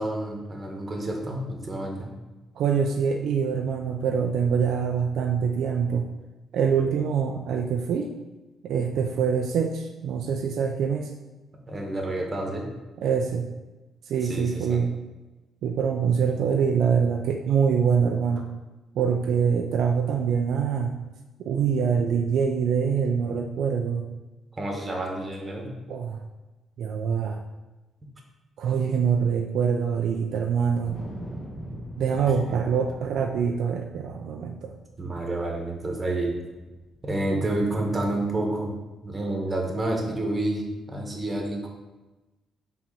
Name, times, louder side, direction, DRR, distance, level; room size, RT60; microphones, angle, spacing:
voice 1, 0.0-2.0 11.5-12.7 14.3-14.8 21.8-22.1 24.5-25.7 32.5-32.6 35.0-36.3 37.0-38.7 39.0-41.7, right 1 dB, 25° right, 1 dB, 1.4 m, -29 dB
voice 2, 2.6-6.1 6.5-8.1 8.6-11.1 13.0-13.5 14.1-14.9 15.6-18.5 19.0-20.9 21.4-24.0 25.9-26.2 26.8-27.4 28.6-31.0 32.0-34.8, right 6 dB, 75° right, 3 dB, 0.4 m, -24 dB
Wind, 30.6-37.1, equal, 20° left, 1.3 m, -42 dB
4.5 x 3.9 x 5.6 m, 1.1 s
cardioid pair, 90°, 0 cm